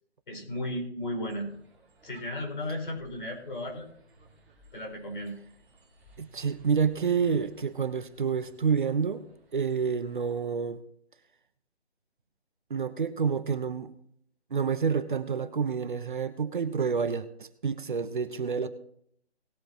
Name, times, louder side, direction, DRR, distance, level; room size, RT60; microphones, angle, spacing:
voice 1, 0.3-1.5 2.0-3.8 4.7-5.4, left 1 dB, 50° left, 2 dB, 4.7 m, -34 dB
sound 1, 1.2-10.4, equal, 5° right, 1.7 m, -58 dB
voice 2, 6.2-9.2 9.5-10.8 12.7-13.9 14.5-18.7, right 6 dB, 50° right, 10 dB, 1.0 m, -28 dB
19.5 x 8.0 x 3.0 m, 0.68 s
hypercardioid pair, 165°, 33 cm